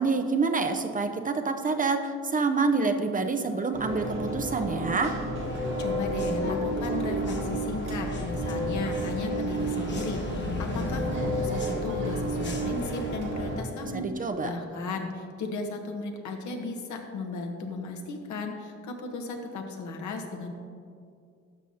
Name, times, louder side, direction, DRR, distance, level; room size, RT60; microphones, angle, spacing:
voice 1, 0.0-5.2 13.9-14.5, right 4 dB, 30° right, 6 dB, 0.5 m, -27 dB
sound 1, 3.7-13.6, right 1 dB, 85° right, 2.2 m, -31 dB
sound 2, 5.4-13.2, left 2 dB, 35° left, 1.2 m, -38 dB
voice 2, 5.8-20.5, left 3 dB, 70° left, 3 dB, 1.1 m, -35 dB
12.0 x 6.2 x 2.8 m, 2.3 s
cardioid pair, 90°, 30 cm